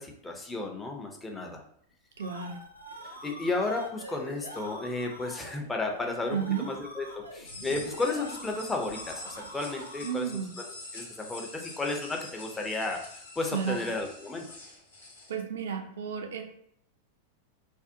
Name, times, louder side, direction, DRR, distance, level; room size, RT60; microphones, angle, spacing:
voice 1, 0.0-1.6 3.2-6.4 6.6-10.3 10.6-10.7 10.9-14.5, left 3 dB, 10° left, 2 dB, 0.5 m, -33 dB
sound 1, 1.9-10.4, equal, 90° left, 0.4 m, -45 dB
voice 2, 2.2-2.6 5.4-5.5 6.3-6.7 9.4-9.5 10.0-10.5 13.5-13.8 15.3-16.4, right 7 dB, 60° right, 5 dB, 0.3 m, -32 dB
sound 2, 7.4-15.3, left 3 dB, 65° left, 0.9 m, -45 dB
2.5 x 2.0 x 2.6 m, 0.69 s
figure-of-eight pair, 90°, 0 cm